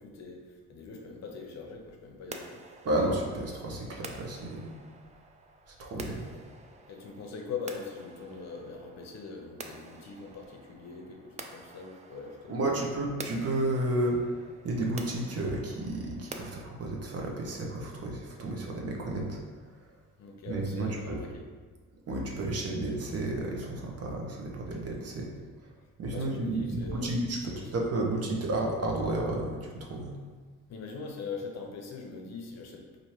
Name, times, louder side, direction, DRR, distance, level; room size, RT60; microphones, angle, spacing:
voice 1, 0.0-2.6 5.9-6.1 6.9-12.8 20.2-21.3 26.1-27.1 27.5-27.7 30.7-32.9, left 5 dB, 60° left, 2 dB, 0.7 m, -42 dB
sound 1, 2.3-16.6, right 3 dB, 25° right, 0.3 m, -48 dB
voice 2, 2.8-4.7 5.8-6.2 12.5-14.2 14.6-19.4 20.5-21.2 22.1-25.3 26.0-30.1, right 2 dB, 55° right, 0 dB, 0.8 m, -32 dB
4.3 x 2.6 x 3.1 m, 1.5 s
cardioid pair, 90°, 30 cm